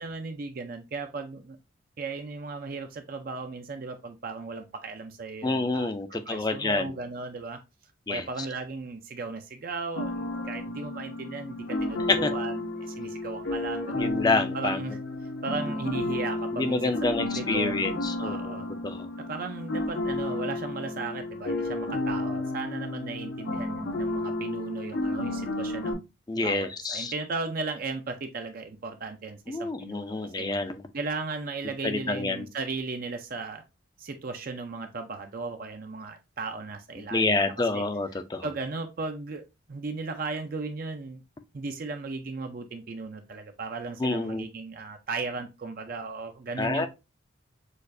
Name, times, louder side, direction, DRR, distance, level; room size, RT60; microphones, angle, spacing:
voice 1, 0.0-1.6 2.0-7.6 8.1-14.1 14.5-15.0 15.4-17.8 18.2-18.7 19.2-26.1 26.3-30.5 30.9-33.6 34.0-37.4 37.7-37.8 38.4-39.4 39.7-41.2 41.5-46.9, right 3 dB, 45° right, 0.5 m, -36 dB
voice 2, 5.4-7.0 8.1-8.3 12.1-12.3 14.0-14.8 16.6-19.1 26.3-27.1 29.5-30.8 31.8-32.5 37.1-38.5 44.0-44.4 46.6-46.9, left 3 dB, 20° left, 0.4 m, -28 dB
sound 1, 9.9-25.9, left 2 dB, 70° left, 0.8 m, -32 dB
6.4 x 2.5 x 2.5 m
head